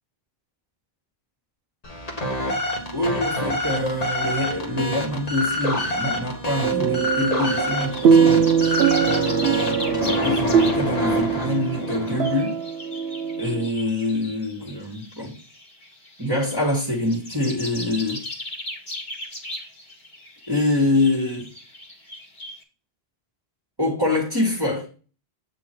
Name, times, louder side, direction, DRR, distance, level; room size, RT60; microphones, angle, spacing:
sound 1, 1.8-12.4, left 1 dB, 40° left, 1.4 m, -27 dB
voice 1, 2.9-12.6 13.4-15.4 16.2-18.3 20.5-21.5 23.8-24.9, left 1 dB, 20° right, 1.8 m, -25 dB
sound 2, 6.6-13.7, right 6 dB, 80° right, 0.9 m, -22 dB
sound 3, 7.5-22.6, left 1 dB, 60° left, 2.2 m, -38 dB
8.5 x 3.8 x 4.4 m
omnidirectional pair, 1.0 m